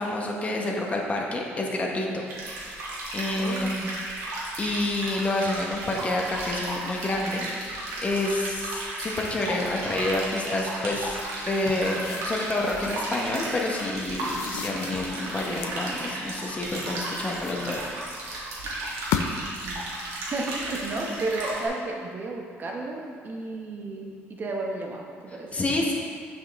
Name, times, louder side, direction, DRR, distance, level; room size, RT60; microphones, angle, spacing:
voice 1, 0.0-2.2 3.1-3.9 4.6-11.2 11.5-17.8 21.1-21.2 25.5-25.9, left 2 dB, 30° left, -1 dB, 1.0 m, -28 dB
sound 1, 2.3-21.7, right 1 dB, 90° right, 1.6 m, -34 dB
voice 2, 3.4-3.8 19.6-19.8 20.3-25.5, right 2 dB, 40° right, 0 dB, 1.0 m, -33 dB
sound 2, 11.4-13.1 14.0-15.9 16.5-18.1 18.8-19.6, left 8 dB, 90° left, 0.4 m, -36 dB
7.1 x 5.7 x 3.5 m, 2.1 s
cardioid pair, 95°, 5 cm